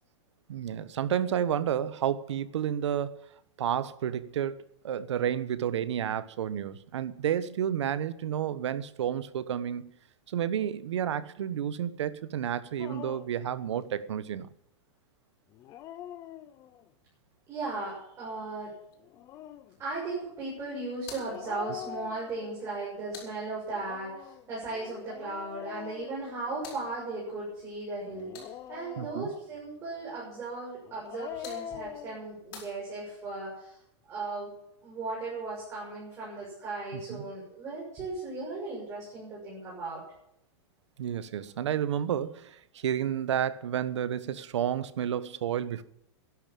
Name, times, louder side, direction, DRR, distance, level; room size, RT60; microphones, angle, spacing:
voice 1, 0.5-3.2 3.6-9.9 10.3-14.5 29.0-29.3 36.9-37.2 41.0-45.8, right 9 dB, 85° right, 1.3 m, -31 dB
Dog, 12.8-13.4 15.5-16.9 19.0-19.8 21.3-22.7 23.7-26.9 28.1-29.5 30.8-32.2, left 11 dB, 20° left, 0.7 m, -44 dB
voice 2, 17.5-18.7 19.8-33.8 34.1-34.5 34.8-40.0, right 3 dB, 20° right, 6.8 m, -37 dB
sound 1, 20.9-24.0 26.0-29.0 30.9-33.4, left 6 dB, 45° left, 6.7 m, -52 dB
13.0 x 11.0 x 8.5 m
supercardioid pair, 165°, 15 cm